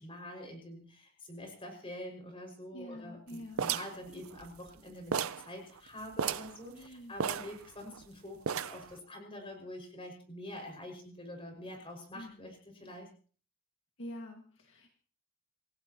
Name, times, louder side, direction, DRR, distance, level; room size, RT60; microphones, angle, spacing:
voice 1, 0.0-13.1, left 1 dB, 25° left, 3 dB, 5.8 m, -46 dB
voice 2, 2.7-3.7 6.7-7.1 12.1-12.5 14.0-14.9, equal, 60° left, 2 dB, 2.0 m, -46 dB
sound 1, 3.6-4.8 5.1-5.5 5.8-5.9 6.1-6.6 7.2-8.0 8.5-8.9, right 7 dB, 70° right, 0.6 m, -34 dB
27.5 x 15.5 x 3.0 m, 0.41 s
head